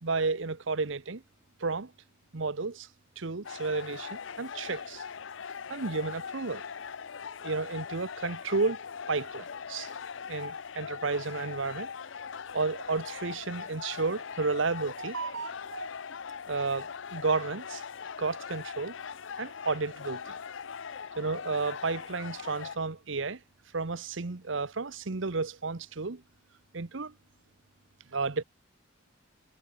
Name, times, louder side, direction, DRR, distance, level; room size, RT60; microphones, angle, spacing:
voice 1, 0.0-1.2 1.6-1.9 2.3-2.9 3.2-5.0 5.7-6.6 7.4-8.8 9.1-9.9 10.3-11.9 12.5-15.9 16.5-17.8 18.2-19.0 19.4-20.4 21.2-23.4 23.7-26.2 26.7-27.1 28.1-28.4, right 4 dB, 65° right, 1.0 m, -32 dB
sound 1, 3.4-22.8, left 6 dB, 65° left, 0.6 m, -41 dB
head